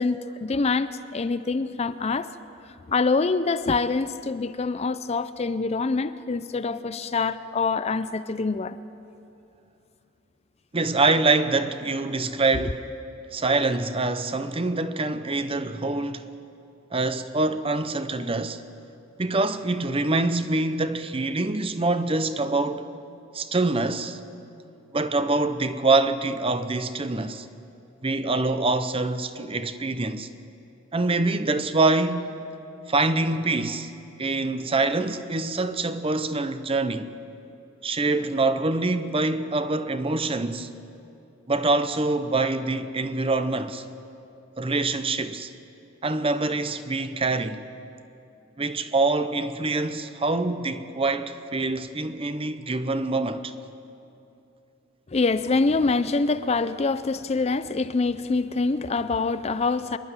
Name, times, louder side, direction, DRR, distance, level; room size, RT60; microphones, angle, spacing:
voice 1, 0.0-2.3 2.9-8.8 55.1-60.0, left 4 dB, 30° left, 0.4 m, -25 dB
voice 2, 10.7-12.9 13.3-16.3 16.9-18.6 19.2-22.9 23.3-24.2 24.9-27.5 28.0-30.3 30.9-32.3 32.9-33.9 34.2-37.1 37.8-40.7 41.5-43.8 44.6-45.5 46.0-47.6 48.6-53.5, right 3 dB, 25° right, 0.7 m, -25 dB
25.0 x 11.0 x 9.6 m
head